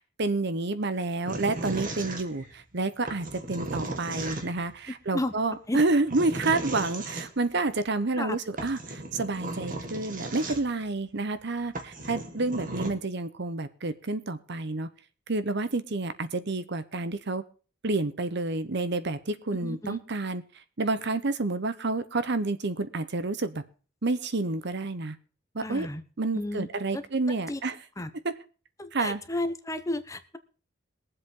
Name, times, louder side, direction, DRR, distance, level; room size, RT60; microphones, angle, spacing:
voice 1, 0.2-14.9 15.3-17.4 17.8-20.4 20.8-23.6 24.0-25.2 25.5-25.9 26.2-27.8 28.2-28.3 28.9-29.2, right 3 dB, 60° right, 12 dB, 1.0 m, -29 dB
sound 1, 1.3-2.6 3.1-4.7 5.8-7.3 8.2-8.3 8.6-10.9 11.4-11.5 11.7-12.9, right 2 dB, 45° right, 1.9 m, -36 dB
voice 2, 19.6-20.0 25.6-26.0 26.3-26.7 26.9-27.0 27.5-27.6 28.0-28.1 28.8-30.4, left 1 dB, 15° left, 11 dB, 0.8 m, -32 dB
22.0 x 7.8 x 3.8 m, 0.36 s
head